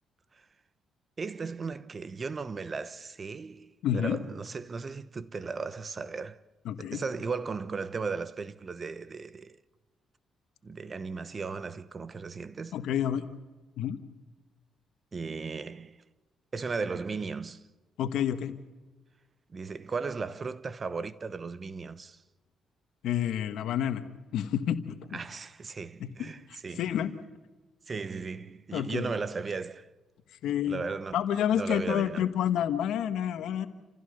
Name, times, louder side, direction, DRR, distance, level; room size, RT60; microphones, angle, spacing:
voice 1, 1.2-6.4 6.8-9.6 10.6-12.8 15.1-16.0 16.5-17.6 19.5-22.2 25.1-27.0 27.9-29.9 30.7-31.2 31.5-32.3, right 4 dB, 35° right, 0.9 m, -36 dB
voice 2, 3.8-4.2 6.6-7.0 12.7-13.3 13.8-14.0 18.0-18.5 23.0-24.0 24.3-25.0 26.0-26.3 26.8-27.1 28.7-29.1 30.4-30.8 31.1-33.7, left 10 dB, 80° left, 1.5 m, -29 dB
29.0 x 15.5 x 6.8 m
cardioid pair, 90°, 0 cm